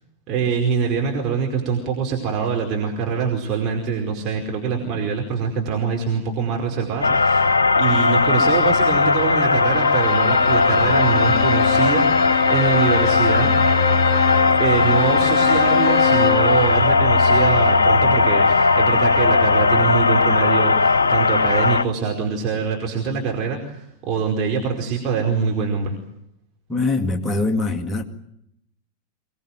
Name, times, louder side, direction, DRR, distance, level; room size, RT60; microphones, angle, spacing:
voice 1, 0.3-7.4 7.8-13.5 14.6-26.0, right 6 dB, 35° right, 0 dB, 4.8 m, -24 dB
sound 1, 7.0-21.8, left 4 dB, 75° left, 1.0 m, -17 dB
Bowed string instrument, 9.7-16.5, left 9 dB, 35° left, 5.8 m, -26 dB
voice 2, 26.7-28.0, left 3 dB, 15° left, 5 dB, 2.3 m, -22 dB
25.0 x 20.0 x 9.4 m, 0.79 s
figure-of-eight pair, 90°, 0 cm